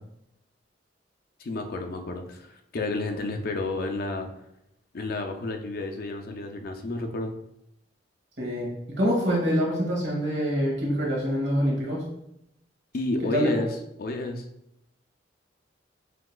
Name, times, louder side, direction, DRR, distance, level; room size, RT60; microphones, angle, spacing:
voice 1, 1.4-4.3 4.9-7.3 12.9-14.4, left 2 dB, 55° left, 4 dB, 0.5 m, -31 dB
voice 2, 8.4-8.7 9.0-12.0 13.3-13.7, equal, 65° right, -3 dB, 1.6 m, -25 dB
6.0 x 2.8 x 2.3 m, 0.80 s
head